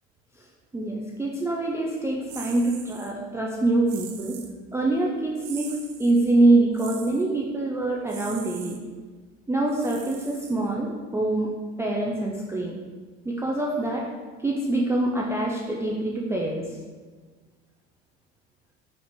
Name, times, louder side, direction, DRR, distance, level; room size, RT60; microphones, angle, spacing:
voice 1, 0.7-4.4 4.7-8.8 9.5-11.5 11.8-12.8 13.3-14.1 14.4-16.8, right 2 dB, 10° right, -3 dB, 0.3 m, -25 dB
sound 1, 2.3-3.1 3.9-4.5 5.4-6.2 6.7-7.2 8.1-8.8 9.7-10.8, right 8 dB, 65° right, 0.5 m, -42 dB
5.3 x 2.4 x 3.1 m, 1.4 s
supercardioid pair, 95°, 33 cm